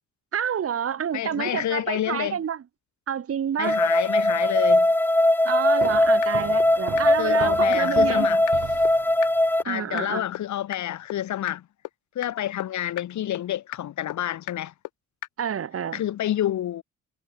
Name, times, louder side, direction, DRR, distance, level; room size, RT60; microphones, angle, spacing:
voice 1, 0.3-2.6 3.1-3.8 5.4-8.3 9.7-10.2 15.4-16.0, right 8 dB, 50° right, 2.0 m, -28 dB
voice 2, 1.1-2.4 3.6-4.9 7.1-8.4 9.6-11.7 12.2-14.7 15.9-16.8, left 12 dB, 70° left, 2.2 m, -28 dB
sound 1, 3.6-9.6, left 1 dB, 5° left, 1.5 m, -20 dB
sound 2, 5.5-5.6 5.8-5.9 6.2-6.3 6.6-6.7 7.0-7.1 7.3-7.4 7.7-7.8 8.1-8.2 8.5-8.6 8.8-8.9 9.2-9.3 9.6-9.7 10.0-10.1 10.3-10.4 10.7-10.8 11.1-11.2 11.5-11.6 11.8-11.9 12.2-12.3 12.6-12.7 13.0-13.1 13.3-13.4 13.7-13.8 14.1-14.2 14.5-14.6 14.8-14.9 15.2-15.3, left 16 dB, 90° left, 1.7 m, -33 dB
sound 3, 5.8-9.5, right 12 dB, 75° right, 3.3 m, -38 dB
cardioid pair, 90°, 30 cm